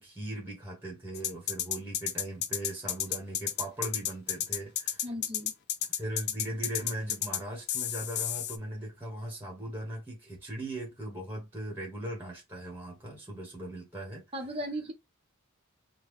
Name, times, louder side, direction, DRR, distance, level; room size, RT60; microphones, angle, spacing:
voice 1, 0.0-5.0 5.9-14.2, right 1 dB, 10° right, 1.2 m, -39 dB
sound 1, 1.1-7.4 7.7-8.6, left 10 dB, 50° left, 0.4 m, -32 dB
voice 2, 5.0-5.5 14.3-14.9, equal, 25° right, 0.8 m, -36 dB
3.7 x 2.3 x 3.2 m
head